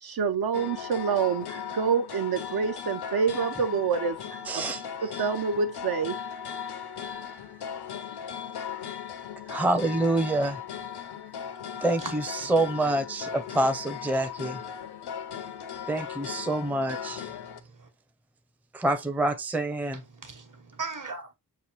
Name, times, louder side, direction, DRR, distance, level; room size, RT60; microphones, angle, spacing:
voice 1, 0.0-4.6 5.0-6.2, right 6 dB, 70° right, 0.6 m, -27 dB
sound 1, 0.5-17.6, left 8 dB, 85° left, 0.6 m, -38 dB
voice 2, 4.5-4.8 9.5-10.6 11.8-14.6 15.9-17.3 18.7-20.0, right 2 dB, 5° right, 0.5 m, -27 dB
voice 3, 19.9-21.3, right 4 dB, 55° right, 1.1 m, -39 dB
6.8 x 2.5 x 2.8 m
wide cardioid pair, 140°, 38 cm